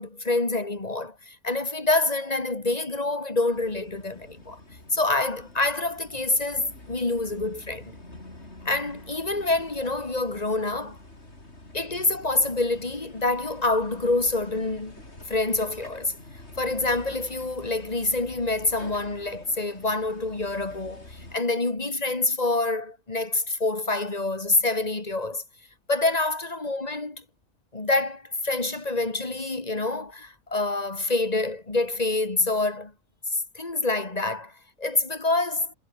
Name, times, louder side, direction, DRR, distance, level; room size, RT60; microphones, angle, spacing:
voice 1, 0.0-4.6 4.9-7.9 8.6-11.0 11.7-15.0 15.3-16.1 16.6-25.4 25.9-27.2 27.7-32.9 33.3-35.7, left 2 dB, 25° left, 2.3 m, -26 dB
sound 1, 3.5-21.4, left 2 dB, 45° left, 5.9 m, -47 dB
omnidirectional pair, 1.6 m